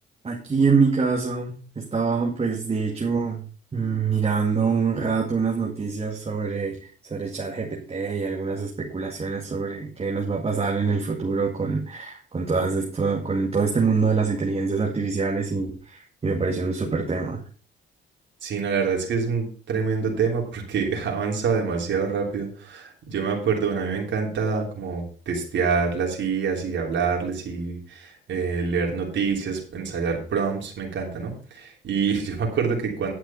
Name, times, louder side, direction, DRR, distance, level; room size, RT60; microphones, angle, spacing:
voice 1, 0.2-3.5 3.7-17.4, right 4 dB, 30° right, -1 dB, 2.1 m, -25 dB
voice 2, 18.4-33.1, right 5 dB, 70° right, 0 dB, 3.2 m, -26 dB
11.0 x 6.1 x 5.5 m, 0.40 s
cardioid pair, 90°, 20 cm